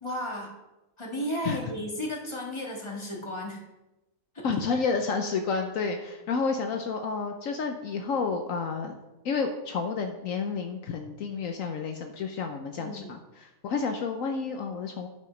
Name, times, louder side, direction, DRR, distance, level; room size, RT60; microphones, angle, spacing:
voice 1, 0.0-0.6 1.0-3.6 4.3-4.5 12.7-13.2, equal, 20° left, -1 dB, 1.7 m, -34 dB
voice 2, 4.4-9.0 9.2-15.1, left 5 dB, 70° left, 5 dB, 1.1 m, -30 dB
9.5 x 5.7 x 5.2 m, 1.0 s
omnidirectional pair, 1.5 m